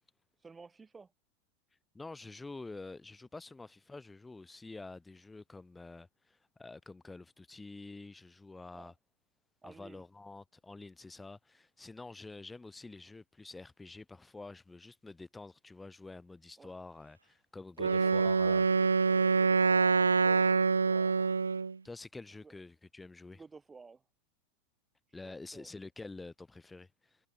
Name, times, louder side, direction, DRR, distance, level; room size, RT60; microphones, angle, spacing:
voice 1, 0.4-1.1 8.7-8.9 9.6-10.0 16.6-16.8 17.8-20.6 20.8-21.3 22.4-22.5 23.3-24.0 25.2-25.7, right 4 dB, 15° right, 4.0 m, -52 dB
voice 2, 1.9-8.9 9.6-18.6 21.8-23.4 25.1-27.2, left 3 dB, 10° left, 2.9 m, -48 dB
Wind instrument woodwind instrument, 17.8-21.8, right 4 dB, 75° right, 0.4 m, -26 dB
figure-of-eight pair, 90°, 0 cm